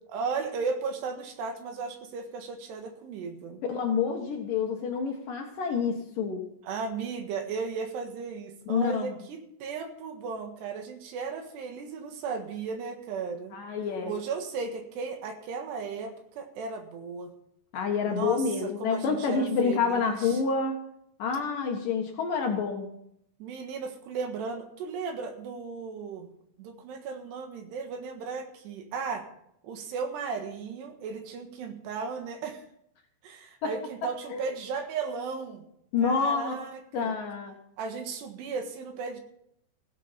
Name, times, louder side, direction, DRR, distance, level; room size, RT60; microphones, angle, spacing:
voice 1, 0.1-3.6 6.6-13.6 14.1-17.3 18.1-20.4 23.4-26.3 26.6-29.3 29.6-32.6 33.2-35.6 36.0-37.1 37.8-39.2, right 5 dB, 75° right, 5 dB, 3.6 m, -35 dB
voice 2, 3.7-6.4 8.7-9.1 13.5-14.1 17.7-20.8 21.2-22.9 33.6-33.7 34.0-34.4 35.9-36.5 36.9-37.5, left 5 dB, 60° left, 2 dB, 2.6 m, -28 dB
16.0 x 8.4 x 5.8 m, 0.73 s
omnidirectional pair, 5.1 m